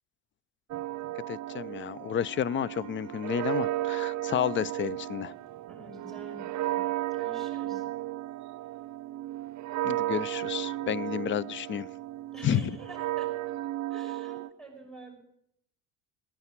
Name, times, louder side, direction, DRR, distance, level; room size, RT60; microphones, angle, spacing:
sound 1, 0.7-14.5, right 15 dB, 50° right, 0.7 m, -34 dB
voice 1, 1.3-5.3 9.8-11.9 12.4-12.8, left 9 dB, 30° left, 24 dB, 0.5 m, -31 dB
voice 2, 5.7-6.8 7.1-7.8 12.3-13.3 13.9-15.2, right 2 dB, ahead, 3 dB, 5.8 m, -48 dB
17.0 x 9.6 x 7.4 m, 0.76 s
supercardioid pair, 100°, 38 cm